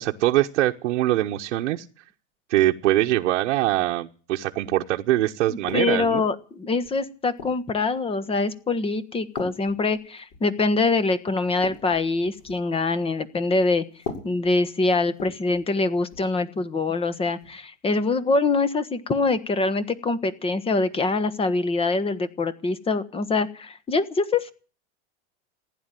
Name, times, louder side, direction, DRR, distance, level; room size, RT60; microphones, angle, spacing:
voice 1, 0.0-1.8 2.5-6.2, right 15 dB, 80° right, 1 dB, 1.2 m, -23 dB
voice 2, 5.5-13.8 14.2-24.5, left 3 dB, 15° left, 15 dB, 1.2 m, -24 dB
sound 1, 5.7-6.2 6.8-7.7 8.4-8.6 9.3-10.5 10.9-11.0 11.4-12.7 13.9-15.7 16.0-16.3 17.4-17.6, left 5 dB, 45° left, 6.8 m, -40 dB
15.5 x 10.5 x 9.1 m, 0.40 s
supercardioid pair, 130°, 36 cm